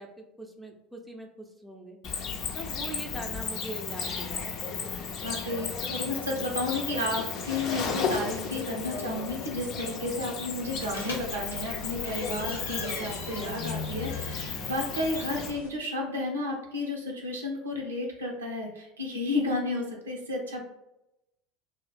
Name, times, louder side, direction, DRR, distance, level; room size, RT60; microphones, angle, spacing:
voice 1, 0.0-2.0 2.5-4.7, right 2 dB, 5° right, 1 dB, 0.6 m, -42 dB
Cricket, 2.0-15.5, left 5 dB, 50° left, 0.5 m, -34 dB
voice 2, 5.2-20.6, left 2 dB, 80° right, 0 dB, 0.6 m, -32 dB
sound 1, 10.7-15.7, left 4 dB, 80° left, 0.7 m, -39 dB
2.7 x 2.3 x 3.3 m, 0.90 s
figure-of-eight pair, 70°, 0 cm